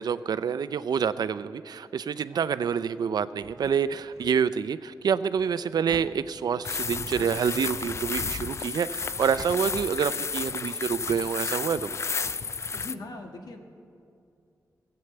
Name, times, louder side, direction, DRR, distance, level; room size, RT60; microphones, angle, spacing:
voice 1, 0.0-12.0, right 7 dB, 85° right, 14 dB, 0.4 m, -27 dB
sound 1, 3.4-4.4 5.4-6.6 7.1-8.0 8.8-9.6, right 3 dB, 60° right, 1.0 m, -48 dB
sound 2, 6.6-12.9, left 5 dB, 45° left, 0.3 m, -32 dB
voice 2, 12.7-13.6, left 2 dB, 80° left, 3 dB, 1.4 m, -40 dB
16.5 x 7.9 x 8.0 m, 2.4 s
wide cardioid pair, 110°, 7 cm